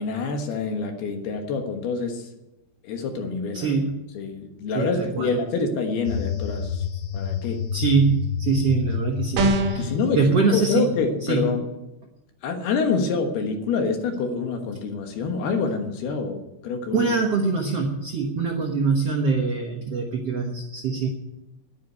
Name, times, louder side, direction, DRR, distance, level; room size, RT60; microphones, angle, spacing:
voice 1, 0.0-2.3 2.8-3.7 4.1-6.8 7.1-7.7 9.8-11.7 12.4-17.0, left 4 dB, 70° left, 4 dB, 3.2 m, -26 dB
voice 2, 3.5-4.0 4.7-5.4 7.7-10.9 11.3-11.5 16.9-21.1, right 4 dB, 90° right, 1 dB, 1.3 m, -23 dB
sound 1, 6.0-11.1, left 7 dB, 25° left, 4.4 m, -29 dB
sound 2, 9.4-9.9, right 2 dB, 60° right, 3.0 m, -21 dB
11.5 x 9.9 x 9.4 m, 0.97 s
omnidirectional pair, 4.9 m